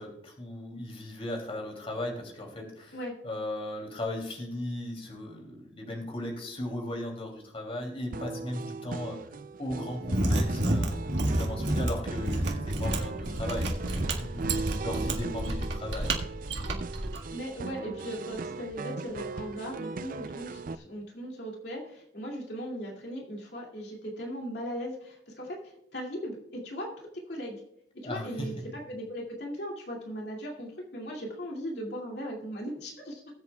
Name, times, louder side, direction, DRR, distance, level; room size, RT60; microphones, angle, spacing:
voice 1, 0.0-3.0 3.2-9.2 9.6-14.5 14.8-16.2 28.0-28.5, left 1 dB, 35° left, 2 dB, 2.9 m, -37 dB
sound 1, 8.1-20.8, right 4 dB, 50° right, 0.4 m, -39 dB
Mechanisms, 10.0-17.2, right 1 dB, 85° right, 1.8 m, -29 dB
voice 2, 17.3-27.6 28.0-33.2, equal, 65° left, -1 dB, 2.5 m, -38 dB
20.0 x 8.1 x 2.3 m, 0.76 s
head